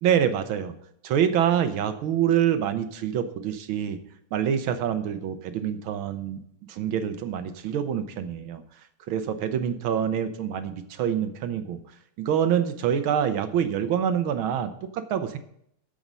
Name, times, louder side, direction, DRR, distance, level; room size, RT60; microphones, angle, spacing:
voice 1, 0.0-0.7 1.0-4.0 4.3-6.4 6.7-8.6 9.1-11.8 12.2-15.4, right 9 dB, 80° right, 10 dB, 1.6 m, -26 dB
13.5 x 5.1 x 5.4 m, 0.70 s
omnidirectional pair, 2.3 m